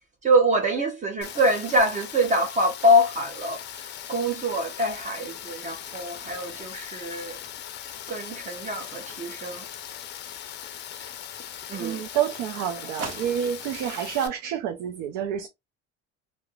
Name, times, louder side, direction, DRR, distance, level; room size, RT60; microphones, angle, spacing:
voice 1, 0.2-7.4 8.1-9.7 11.7-12.0, equal, 25° right, 0.5 m, -24 dB
Rain, 1.2-14.3, left 10 dB, 40° left, 0.4 m, -39 dB
sound 1, 5.4-10.4 13.0-14.4, right 4 dB, 60° right, 0.9 m, -44 dB
voice 2, 11.8-15.5, right 9 dB, 85° right, 0.5 m, -28 dB
2.4 x 2.1 x 2.9 m
cardioid pair, 150°, 29 cm